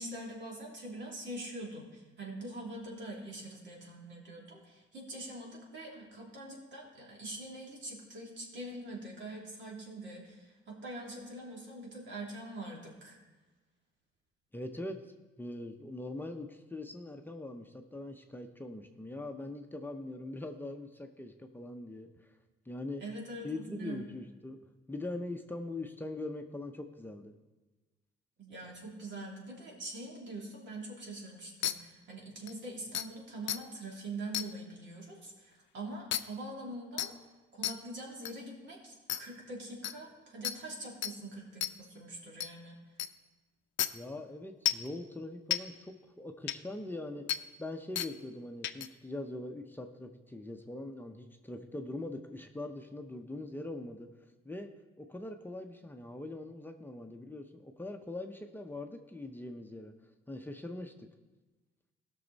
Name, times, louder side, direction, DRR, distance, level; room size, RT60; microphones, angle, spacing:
voice 1, 0.0-13.2 23.0-24.0 28.4-37.1 37.5-42.8, right 1 dB, 65° right, -2 dB, 3.0 m, -44 dB
voice 2, 14.5-22.3 22.7-23.0 23.4-24.6 24.9-27.4 43.9-54.1 54.4-54.7 55.0-59.9 60.3-61.1, left 2 dB, 10° left, 4 dB, 0.7 m, -42 dB
sound 1, 31.6-31.7 32.5-32.6 32.9-33.1 33.5-33.6 34.3-34.5 36.1-36.2 37.0-37.1 37.6-37.7 38.2-38.3 39.1-39.2 39.8-39.9 40.4-40.6 41.0-41.1 41.6-41.7 42.4-42.5 43.0-43.1 43.8-43.9 44.7-44.9 45.5-45.6 46.5-46.6 47.3-47.4 48.0-48.1 48.6-48.9, left 11 dB, 70° left, 0.5 m, -31 dB
16.0 x 6.3 x 4.0 m, 1.2 s
cardioid pair, 90°, 20 cm